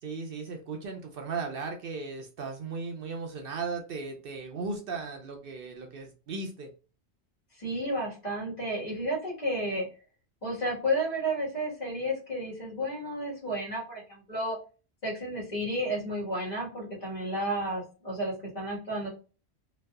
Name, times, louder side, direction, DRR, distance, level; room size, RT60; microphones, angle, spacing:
voice 1, 0.0-6.7, right 4 dB, 65° right, 3 dB, 0.7 m, -36 dB
voice 2, 7.6-9.9 10.4-14.6 15.0-19.1, equal, 40° left, -5 dB, 1.5 m, -32 dB
3.1 x 2.6 x 2.3 m, 0.35 s
omnidirectional pair, 1.1 m